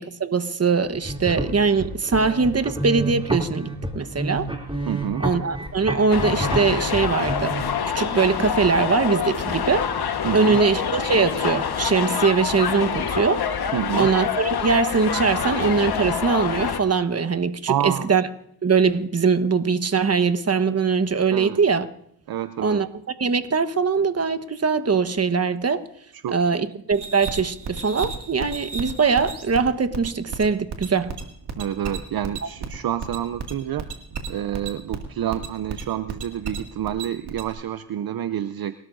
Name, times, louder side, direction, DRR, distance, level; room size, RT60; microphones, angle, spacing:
voice 1, 0.0-3.7 3.9-4.5 5.2-7.5 7.9-9.9 10.3-13.4 13.9-18.2 18.6-21.9 22.6-22.9 23.2-25.8 26.3-31.1, right 5 dB, 35° right, 12 dB, 1.2 m, -22 dB
sound 1, 0.9-7.6, right 1 dB, 15° right, 3.0 m, -29 dB
voice 2, 4.9-5.2 10.2-10.6 13.7-14.1 17.7-18.1 21.3-21.6 22.3-22.8 26.1-26.6 31.6-33.9 34.3-38.7, right 10 dB, 60° right, 13 dB, 0.6 m, -28 dB
sound 2, 6.1-16.8, left 7 dB, 65° left, 1.4 m, -26 dB
sound 3, 26.9-37.5, right 5 dB, 80° right, 2.3 m, -34 dB
30.0 x 13.0 x 2.6 m, 0.68 s
supercardioid pair, 50°, 41 cm